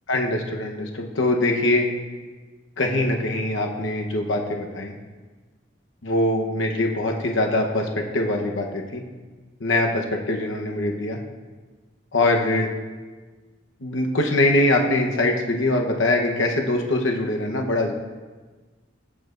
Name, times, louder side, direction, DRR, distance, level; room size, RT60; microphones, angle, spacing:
voice 1, 0.1-1.9 2.8-5.0 6.0-9.0 9.6-11.2 12.1-12.7 13.8-17.9, left 2 dB, 75° left, 2 dB, 1.0 m, -23 dB
15.5 x 7.6 x 2.5 m, 1.3 s
head